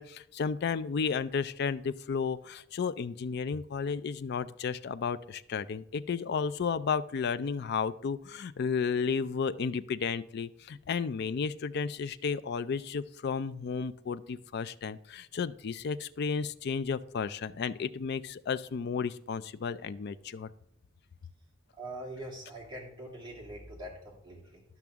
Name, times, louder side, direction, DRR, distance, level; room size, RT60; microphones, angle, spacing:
voice 1, 0.0-20.5, left 5 dB, 55° left, 14 dB, 0.4 m, -33 dB
voice 2, 21.7-24.6, right 1 dB, 20° right, -4 dB, 2.6 m, -43 dB
12.0 x 6.0 x 3.5 m, 0.74 s
head